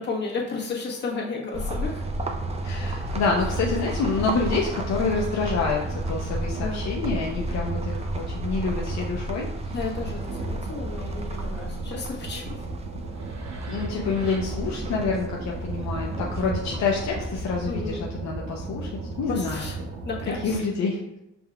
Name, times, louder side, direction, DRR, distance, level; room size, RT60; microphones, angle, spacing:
voice 1, 0.0-2.0 6.6-6.8 9.7-12.7 17.7-18.1 19.3-19.8 20.0-20.6, left 4 dB, 35° left, -4 dB, 1.3 m, -33 dB
sound 1, 1.5-17.9, right 1 dB, 20° right, 0.5 m, -32 dB
voice 2, 2.6-9.7 13.7-18.9 19.2-19.6 20.4-21.0, left 4 dB, 65° left, -1 dB, 0.6 m, -27 dB
sound 2, 9.9-20.6, right 3 dB, 65° right, 0.8 m, -34 dB
5.3 x 3.4 x 2.3 m, 0.87 s
cardioid pair, 90°, 30 cm